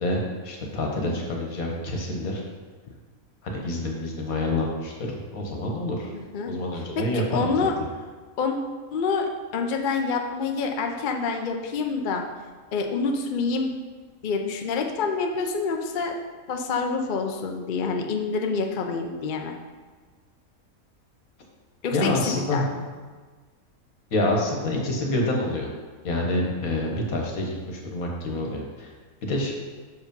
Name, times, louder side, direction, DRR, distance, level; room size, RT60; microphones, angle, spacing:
voice 1, 0.0-2.4 3.4-6.1 6.5-7.7 21.9-22.7 24.1-25.7 26.0-28.9 29.2-29.5, left 1 dB, 75° left, 0 dB, 1.7 m, -27 dB
voice 2, 6.1-6.5 7.0-7.7 8.4-8.6 8.9-12.2 12.7-13.7 14.2-16.1 16.5-19.5 21.8-22.8, left 4 dB, 50° left, 3 dB, 0.6 m, -27 dB
6.3 x 4.9 x 5.4 m, 1.4 s
omnidirectional pair, 1.5 m